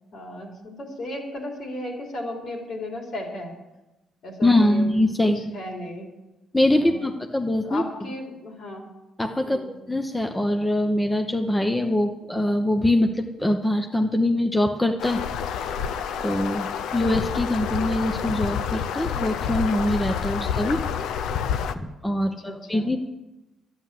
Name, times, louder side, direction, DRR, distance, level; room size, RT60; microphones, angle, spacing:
voice 1, 0.1-3.6 4.2-4.9 5.2-6.1 6.7-7.1 7.6-8.9 9.4-9.7 22.2-22.9, left 1 dB, 65° left, 1 dB, 3.4 m, -35 dB
voice 2, 4.4-5.4 6.5-8.1 9.2-9.6 9.9-15.2 16.2-20.9 21.7-23.0, left 1 dB, 10° left, 4 dB, 1.0 m, -23 dB
sound 1, 15.0-21.7, left 7 dB, 85° left, 0.7 m, -28 dB
11.5 x 9.5 x 7.5 m, 1.0 s
cardioid pair, 90°, 0 cm